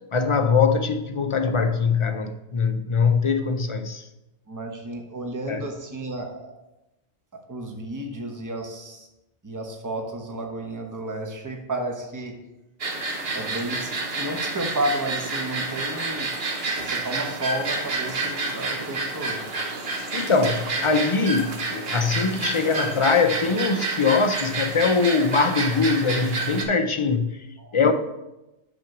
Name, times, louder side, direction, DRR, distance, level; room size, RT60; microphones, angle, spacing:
voice 1, 0.1-4.1 5.5-5.6 20.1-27.4 27.7-27.9, left 4 dB, 50° left, 0.3 m, -22 dB
voice 2, 4.5-6.5 7.5-9.1 9.4-12.4 13.3-16.3 16.8-19.4 27.6-27.9, right 1 dB, 15° right, 1.0 m, -32 dB
sound 1, 12.8-26.6, right 3 dB, 60° right, 1.3 m, -29 dB
6.2 x 5.8 x 5.9 m
omnidirectional pair, 1.2 m